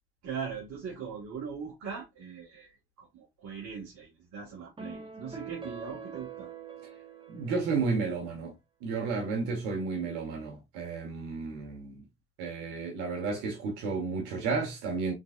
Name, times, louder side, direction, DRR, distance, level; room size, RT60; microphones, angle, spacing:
voice 1, 0.2-6.5, right 6 dB, 55° right, 1.9 m, -40 dB
sound 1, 4.8-8.3, right 5 dB, 15° right, 0.9 m, -44 dB
voice 2, 7.3-8.5 8.8-12.0 12.4-15.1, right 4 dB, 75° right, 1.4 m, -32 dB
3.9 x 3.9 x 2.5 m
hypercardioid pair, 75°, 32 cm